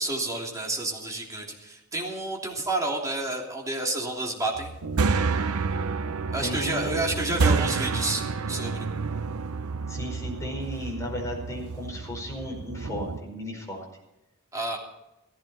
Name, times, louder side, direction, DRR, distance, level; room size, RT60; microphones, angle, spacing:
voice 1, 0.0-4.7 6.3-8.9 14.5-14.8, right 2 dB, 15° right, -1 dB, 3.1 m, -30 dB
sound 1, 4.6-13.2, right 4 dB, 80° right, 0.7 m, -29 dB
voice 2, 6.4-7.0 9.9-13.8, equal, 15° left, -1 dB, 4.9 m, -35 dB
16.0 x 15.5 x 4.3 m, 0.94 s
head